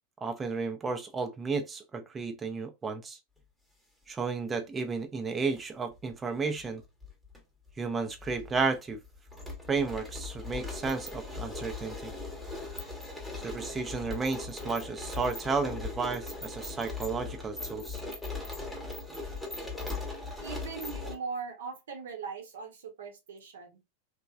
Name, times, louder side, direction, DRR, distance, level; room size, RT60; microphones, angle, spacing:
voice 1, 0.2-3.2 4.1-6.8 7.8-9.0 9.7-12.1 13.4-18.0, right 4 dB, 15° right, 0.5 m, -33 dB
sound 1, 5.3-5.6 6.6-7.4 7.7-7.8 8.2-21.1, left 3 dB, ahead, 0.9 m, -39 dB
voice 2, 20.4-23.8, right 5 dB, 60° right, 0.8 m, -40 dB
3.0 x 2.2 x 2.4 m
figure-of-eight pair, 90°, 0 cm